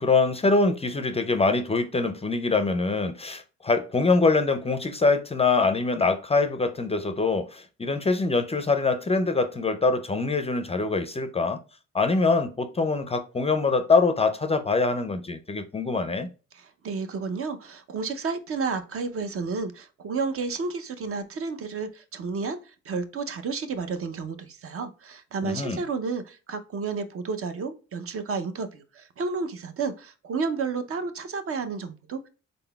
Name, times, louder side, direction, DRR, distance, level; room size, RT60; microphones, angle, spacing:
voice 1, 0.0-11.6 11.9-16.3 25.4-25.8, left 3 dB, 20° left, 0.4 m, -24 dB
voice 2, 16.5-32.3, right 4 dB, 50° right, 0.6 m, -31 dB
3.8 x 3.8 x 2.2 m
cardioid pair, 90°, 30 cm